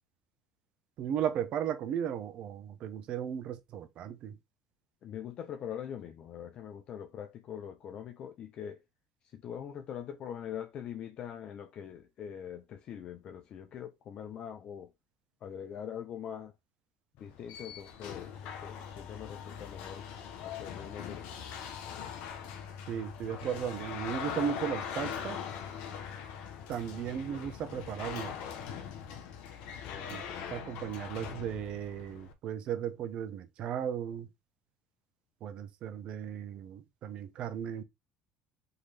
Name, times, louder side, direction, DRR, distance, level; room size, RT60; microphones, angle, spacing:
voice 1, 1.0-4.4 22.9-25.4 26.7-28.3 30.1-30.2 30.5-34.3 35.4-37.8, right 9 dB, 55° right, 1.0 m, -36 dB
voice 2, 5.0-8.8 9.3-14.9 15.4-16.5 17.2-20.0 20.4-21.2 26.9-27.2 29.9-30.6, left 9 dB, 50° left, 0.7 m, -43 dB
sound 1, 17.2-32.3, left 7 dB, 70° left, 1.0 m, -41 dB
4.0 x 3.1 x 4.2 m
hypercardioid pair, 80°, 2 cm